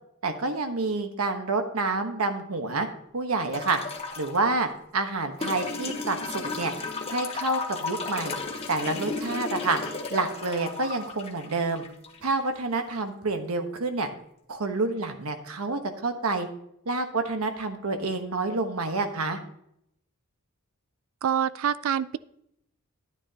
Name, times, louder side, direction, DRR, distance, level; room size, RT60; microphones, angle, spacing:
voice 1, 0.2-2.9 3.1-3.8 4.2-6.7 7.1-8.4 8.7-9.8 10.1-11.8 12.2-14.1 14.5-16.5 16.9-19.4, right 3 dB, 85° right, 6 dB, 1.2 m, -28 dB
sound 1, 3.5-4.4 5.4-12.4 13.8-13.9, left 3 dB, 25° left, 1.1 m, -34 dB
voice 2, 21.2-22.2, right 8 dB, 65° right, 17 dB, 0.3 m, -26 dB
11.0 x 9.7 x 2.9 m, 0.77 s
head